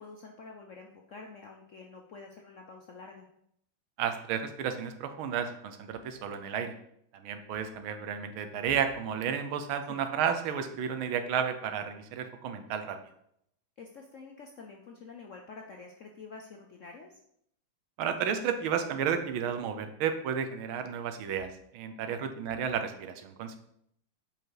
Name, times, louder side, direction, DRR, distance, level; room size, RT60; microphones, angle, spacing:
voice 1, 0.0-3.3 9.9-10.0 13.8-17.2 22.1-22.2, left 4 dB, 65° left, 2 dB, 0.7 m, -48 dB
voice 2, 4.0-6.8 7.1-13.0 18.0-23.6, right 7 dB, 85° right, 8 dB, 1.7 m, -32 dB
7.4 x 5.3 x 4.7 m, 0.72 s
omnidirectional pair, 2.2 m